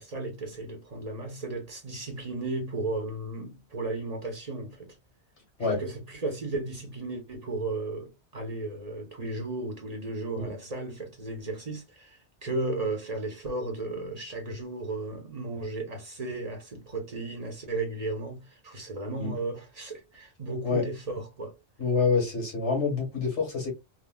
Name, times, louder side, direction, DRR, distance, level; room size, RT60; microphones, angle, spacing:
voice 1, 0.0-5.0 5.6-21.5, right 2 dB, 40° right, 0.8 m, -35 dB
voice 2, 21.8-23.7, left 4 dB, 85° left, 1.7 m, -26 dB
3.6 x 2.2 x 2.2 m
omnidirectional pair, 1.1 m